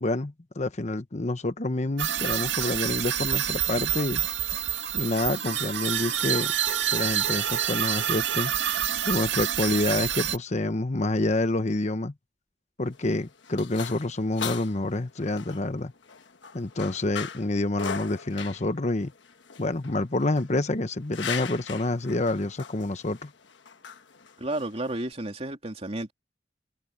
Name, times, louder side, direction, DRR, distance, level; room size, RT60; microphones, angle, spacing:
voice 1, 0.0-4.2 4.9-6.5 6.9-8.5 9.0-12.1 12.8-15.9 16.5-19.1 19.6-23.3, left 2 dB, 40° left, 1.0 m, -28 dB
sound 1, 2.0-10.4, right 10 dB, 90° right, 1.9 m, -27 dB
sound 2, 12.8-25.1, left 7 dB, 80° left, 1.2 m, -40 dB
voice 2, 24.4-26.1, right 1 dB, 35° right, 3.1 m, -32 dB
head